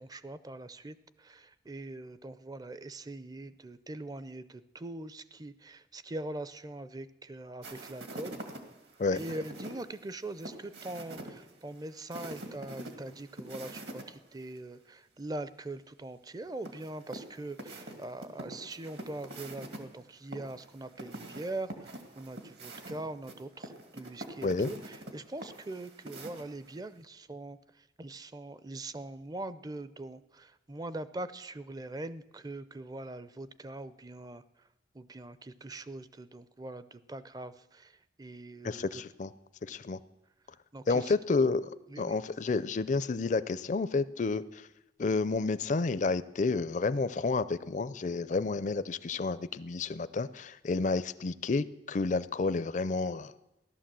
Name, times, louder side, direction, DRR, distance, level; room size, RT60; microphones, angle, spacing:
voice 1, 0.0-8.4 9.1-34.7 34.9-39.0 40.7-41.1 41.9-42.2, right 2 dB, 20° right, 15 dB, 0.5 m, -42 dB
sound 1, 7.6-14.0 14.4-14.5 16.6-19.8 20.3-26.8, right 1 dB, 65° right, 2.1 m, -45 dB
voice 2, 38.6-39.3 39.6-40.0 40.9-41.7 42.0-44.7 45.0-53.3, left 3 dB, 40° left, 15 dB, 0.4 m, -30 dB
15.5 x 12.0 x 7.5 m, 0.96 s
head